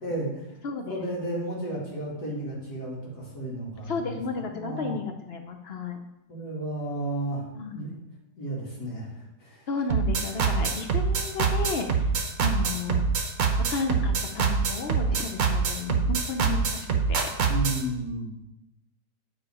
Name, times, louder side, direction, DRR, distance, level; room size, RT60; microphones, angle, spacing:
voice 1, 0.0-0.5 0.9-4.1 4.5-4.9 6.3-7.4 7.7-7.9 8.4-9.7 17.5-18.3, right 1 dB, 60° left, -5 dB, 2.9 m, -33 dB
voice 2, 0.6-1.0 3.9-6.0 7.6-8.0 9.7-12.1 12.4-13.0 13.7-17.3, left 4 dB, 80° left, 5 dB, 0.5 m, -33 dB
sound 1, 9.9-17.8, right 5 dB, 55° right, 1.2 m, -25 dB
9.7 x 4.8 x 4.8 m, 0.87 s
omnidirectional pair, 1.9 m